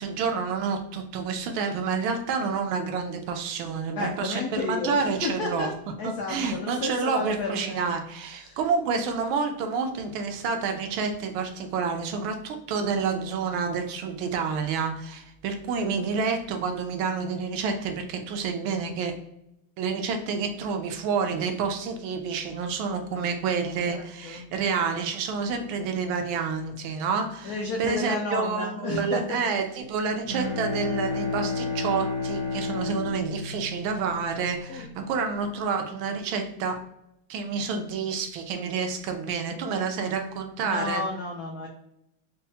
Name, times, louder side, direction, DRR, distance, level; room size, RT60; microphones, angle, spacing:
voice 1, 0.0-5.7 6.0-19.2 19.8-36.8 37.3-41.0, right 5 dB, 80° right, 5 dB, 1.3 m, -29 dB
voice 2, 3.9-5.7 6.0-7.8 8.2-8.6 23.8-24.5 27.4-29.4 34.7-34.9 40.6-41.7, left 3 dB, 80° left, 0 dB, 0.8 m, -32 dB
Bowed string instrument, 30.1-34.8, left 3 dB, 55° right, 0.8 m, -31 dB
5.4 x 2.0 x 2.7 m, 0.82 s
omnidirectional pair, 2.3 m